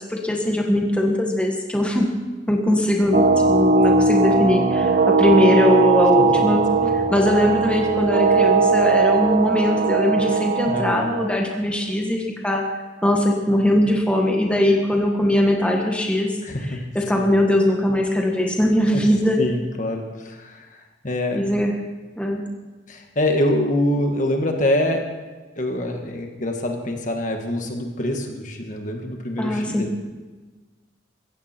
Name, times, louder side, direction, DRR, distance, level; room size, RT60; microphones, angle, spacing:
voice 1, 0.0-2.1 2.5-12.7 13.0-16.4 16.9-19.4 21.3-21.8 22.2-22.5 29.4-29.9, left 1 dB, 5° left, 0 dB, 1.5 m, -20 dB
sound 1, 3.1-11.3, right 4 dB, 50° right, 1.1 m, -19 dB
voice 2, 10.7-11.1 16.4-16.8 17.1-17.2 18.9-19.1 19.4-20.7 21.0-21.5 22.9-25.1 25.6-30.0, left 1 dB, 45° left, 3 dB, 1.8 m, -25 dB
16.0 x 15.5 x 4.5 m, 1.3 s
head